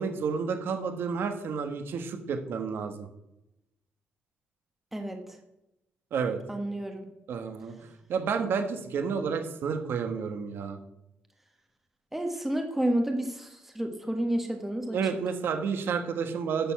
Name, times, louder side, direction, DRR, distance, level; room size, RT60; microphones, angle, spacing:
voice 1, 0.0-3.1 6.1-6.4 7.3-7.7 8.1-10.8 14.9-16.7, right 6 dB, 55° right, 7 dB, 1.3 m, -30 dB
voice 2, 6.5-7.1 12.1-15.0, right 1 dB, 5° right, 3 dB, 1.3 m, -30 dB
11.0 x 6.9 x 5.8 m, 0.87 s
cardioid pair, 155°, 4 cm